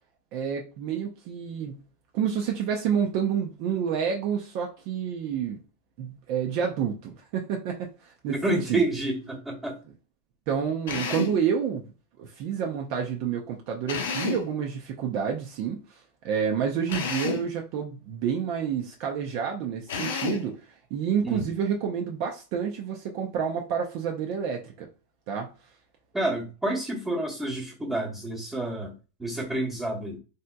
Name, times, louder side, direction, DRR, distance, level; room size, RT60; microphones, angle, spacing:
voice 1, 0.3-1.8 2.1-5.6 6.0-8.9 10.5-11.8 12.2-16.0 16.2-20.6 20.9-24.9 25.3-25.5, right 7 dB, 50° right, 0.5 m, -29 dB
voice 2, 8.3-9.8 21.2-21.5 26.1-28.9 29.2-30.2, right 1 dB, 10° right, 1.0 m, -29 dB
Drill, 10.9-11.4 13.9-14.5 16.9-17.5 19.9-20.5, left 5 dB, 80° left, 0.8 m, -30 dB
3.5 x 2.7 x 2.2 m
supercardioid pair, 130°, 0 cm